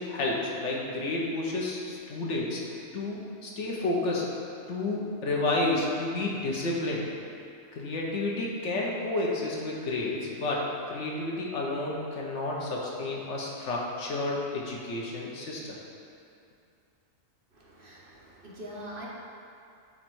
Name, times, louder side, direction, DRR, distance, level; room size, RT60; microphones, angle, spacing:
voice 1, 0.0-2.6 2.9-4.3 4.7-7.1 7.8-15.8, left 2 dB, 65° left, -3 dB, 1.2 m, -30 dB
voice 2, 17.5-19.1, right 1 dB, 50° right, -4 dB, 0.9 m, -43 dB
8.2 x 3.3 x 4.6 m, 2.5 s
omnidirectional pair, 1.3 m